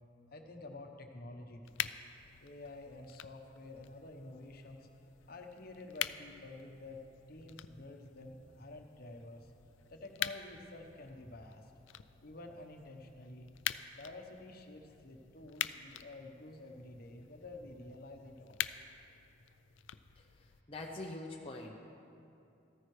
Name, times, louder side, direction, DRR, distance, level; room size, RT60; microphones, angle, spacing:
voice 1, 0.3-1.9 2.4-7.0 7.3-9.5 9.9-11.7 12.2-13.5 13.9-18.7, left 2 dB, 55° left, 3 dB, 1.0 m, -50 dB
sound 1, 1.6-20.6, left 11 dB, 85° left, 0.4 m, -45 dB
voice 2, 20.2-21.8, left 2 dB, 30° left, -1 dB, 0.7 m, -45 dB
14.5 x 14.0 x 3.2 m, 2.8 s
head